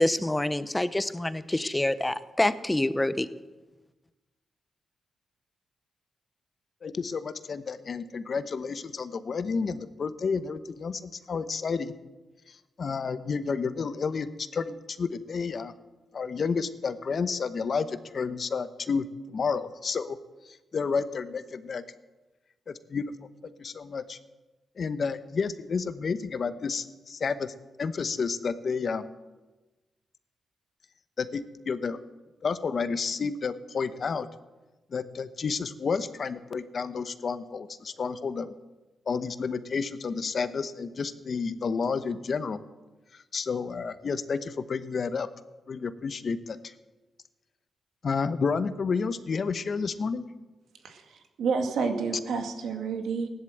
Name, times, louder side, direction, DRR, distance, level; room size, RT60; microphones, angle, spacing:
voice 1, 0.0-3.3, left 1 dB, 15° left, 14 dB, 0.8 m, -26 dB
voice 2, 6.8-11.9 12.5-15.7 16.1-20.2 20.4-21.8 22.7-23.0 23.6-24.2 24.8-29.0 31.2-32.0 32.4-34.3 34.9-38.5 39.1-42.6 43.3-45.3 45.7-46.7 48.0-50.2, left 5 dB, 55° left, 12 dB, 1.0 m, -31 dB
voice 3, 50.8-53.3, right 5 dB, 80° right, 5 dB, 2.1 m, -30 dB
16.0 x 11.0 x 7.8 m, 1.1 s
cardioid pair, 70°, 0 cm